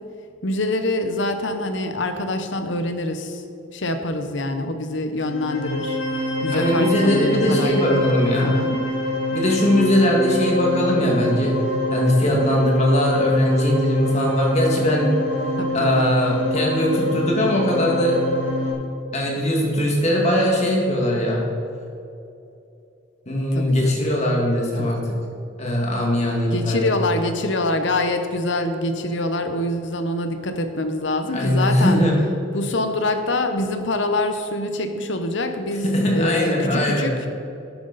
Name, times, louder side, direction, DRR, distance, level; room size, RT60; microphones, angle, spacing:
voice 1, 0.4-3.4 3.7-8.8 15.6-16.1 23.5-24.2 24.8-24.9 26.5-32.0 32.5-37.1, left 2 dB, 65° left, 7 dB, 0.9 m, -25 dB
sound 1, 5.2-18.7, left 1 dB, 80° left, 2.2 m, -26 dB
voice 2, 6.5-8.6 9.3-11.5 11.9-15.1 15.7-18.2 19.1-21.5 23.3-25.0 25.6-26.9 31.3-32.2 35.8-37.1, left 1 dB, 35° left, -2 dB, 2.1 m, -20 dB
12.0 x 9.3 x 4.1 m, 2.8 s
head